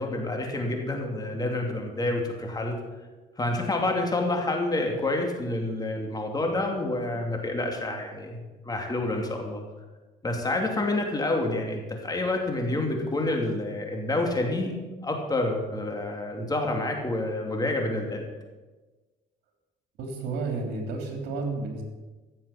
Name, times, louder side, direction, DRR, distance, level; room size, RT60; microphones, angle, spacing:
voice 1, 0.0-2.7 3.4-9.6 10.2-14.7 15.0-18.3, left 2 dB, 20° left, 2 dB, 2.7 m, -28 dB
voice 2, 20.0-21.8, right 3 dB, 80° right, 2 dB, 3.4 m, -31 dB
15.5 x 7.3 x 7.2 m, 1.2 s
cardioid pair, 110°, 17 cm